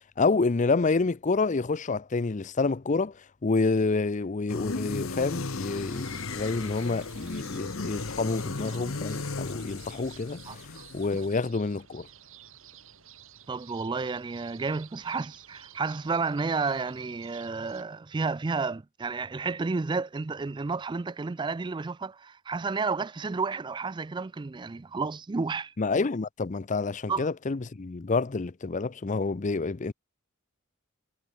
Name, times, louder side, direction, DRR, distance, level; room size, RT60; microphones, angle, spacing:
voice 1, 0.2-3.1 3.4-10.4 10.9-12.1 25.8-29.9, left 3 dB, 35° left, 0.5 m, -28 dB
sound 1, 4.5-11.4, left 3 dB, 70° left, 1.3 m, -36 dB
sound 2, 5.7-17.8, right 10 dB, 65° right, 4.9 m, -53 dB
voice 2, 10.5-10.8 11.1-11.2 13.5-25.7 27.1-27.3, right 4 dB, 20° right, 0.4 m, -31 dB
head